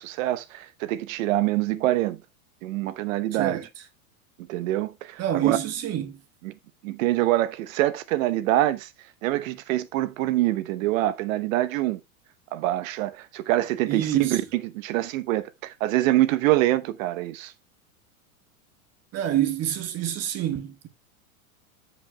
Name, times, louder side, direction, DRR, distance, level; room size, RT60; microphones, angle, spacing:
voice 1, 0.0-2.2 2.6-3.6 4.5-5.6 6.4-6.5 6.8-8.9 9.2-12.0 12.5-17.5, right 15 dB, 65° right, 0.9 m, -25 dB
voice 2, 5.2-6.2 13.9-14.4 19.1-20.9, right 11 dB, 35° right, 1.5 m, -26 dB
14.5 x 5.3 x 2.2 m
hypercardioid pair, 115°, 43 cm